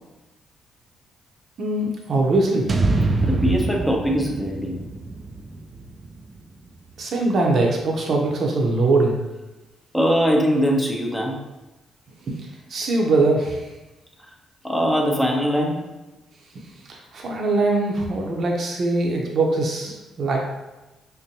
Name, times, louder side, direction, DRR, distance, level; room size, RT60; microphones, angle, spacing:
voice 1, 1.6-2.7 7.0-9.2 12.3-12.4 12.7-13.6 16.8-20.5, right 2 dB, 55° right, 0 dB, 0.8 m, -22 dB
sound 1, 2.7-6.9, right 2 dB, 40° right, 0.3 m, -25 dB
voice 2, 3.2-4.8 9.9-11.4 14.6-15.9, equal, 5° left, 0 dB, 0.7 m, -21 dB
5.2 x 2.2 x 2.8 m, 1.0 s
cardioid pair, 90°, 0 cm